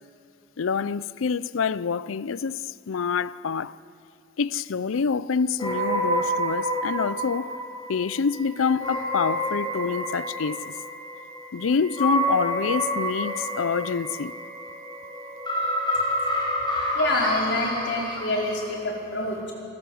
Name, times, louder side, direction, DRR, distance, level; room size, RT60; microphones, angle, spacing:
voice 1, 0.6-3.8 4.4-7.6 7.9-10.7 11.5-14.3, left 5 dB, 85° left, 0.5 m, -26 dB
sound 1, 5.6-18.6, equal, 25° left, 5.0 m, -29 dB
voice 2, 16.9-19.5, left 2 dB, 60° left, 4.5 m, -27 dB
26.5 x 14.0 x 7.8 m
head